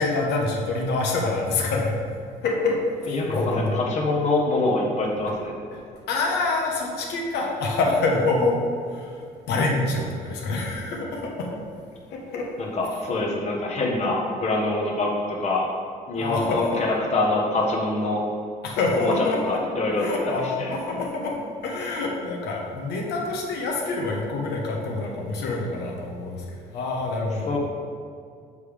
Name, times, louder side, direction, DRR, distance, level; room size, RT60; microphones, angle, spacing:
voice 1, 0.0-1.9 2.4-3.8 5.7-8.6 8.9-11.5 12.1-12.5 16.1-16.8 18.6-19.6 19.9-21.4 21.6-27.6, left 3 dB, 75° left, -1 dB, 1.1 m, -26 dB
voice 2, 3.1-5.5 12.6-15.7 16.1-18.2 19.0-20.3 20.6-20.7 27.5-27.6, left 2 dB, 40° left, -2 dB, 1.1 m, -25 dB
6.8 x 3.4 x 5.0 m, 2.3 s
cardioid pair, 110°, 17 cm